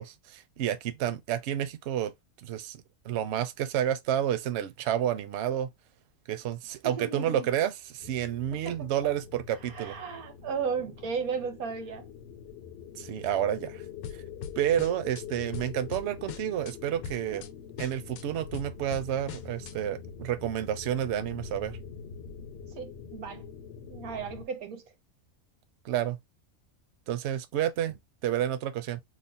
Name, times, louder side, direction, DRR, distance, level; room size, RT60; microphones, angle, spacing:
voice 1, 0.0-2.1 2.4-5.7 6.3-10.0 13.0-13.8 14.6-17.4 17.8-21.8 25.8-26.2 27.1-29.0, right 11 dB, 65° right, 0.7 m, -30 dB
voice 2, 6.8-7.5 8.5-9.1 9.7-12.0 17.3-17.4 22.8-23.4 23.8-24.8, right 6 dB, 85° right, 1.3 m, -35 dB
sound 1, 8.0-24.4, left 7 dB, 60° left, 0.7 m, -45 dB
sound 2, 14.0-15.2 15.5-16.7 17.0-17.5 17.8-19.7, left 7 dB, 80° left, 1.0 m, -41 dB
3.0 x 2.1 x 4.0 m
omnidirectional pair, 1.5 m